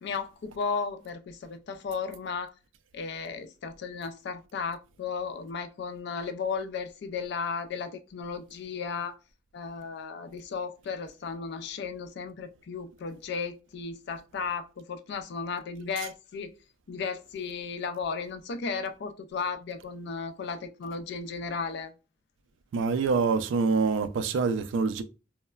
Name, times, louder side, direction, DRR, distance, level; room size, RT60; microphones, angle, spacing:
voice 1, 0.0-2.5 2.9-9.2 9.5-16.5 16.9-21.9, left 5 dB, 60° left, 0.3 m, -35 dB
voice 2, 22.7-25.0, right 4 dB, 80° right, 0.3 m, -25 dB
3.1 x 2.1 x 2.2 m
head